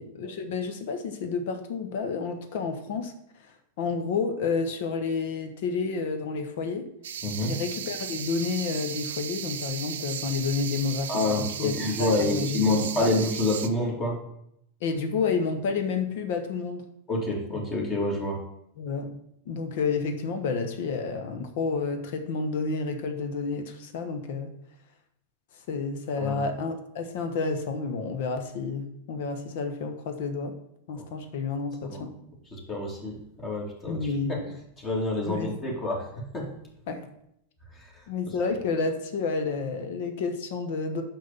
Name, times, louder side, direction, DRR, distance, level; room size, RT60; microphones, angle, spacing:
voice 1, 0.0-3.1 3.8-6.9 7.4-11.7 12.0-13.1 14.8-16.9 18.8-19.1 19.5-24.6 25.7-30.5 30.9-32.1 33.9-34.5 35.2-35.5 36.9-37.1 38.1-41.0, left 4 dB, 50° left, 7 dB, 1.1 m, -30 dB
sound 1, 7.0-13.7, right 9 dB, 60° right, 0.6 m, -36 dB
voice 2, 7.2-7.6 11.1-14.2 17.1-18.4 26.2-26.3 31.0-31.1 31.8-32.1 32.7-34.4 34.8-36.5 37.7-37.9, left 2 dB, 25° left, -2 dB, 2.8 m, -28 dB
6.3 x 5.8 x 7.0 m, 0.76 s
figure-of-eight pair, 90°, 0 cm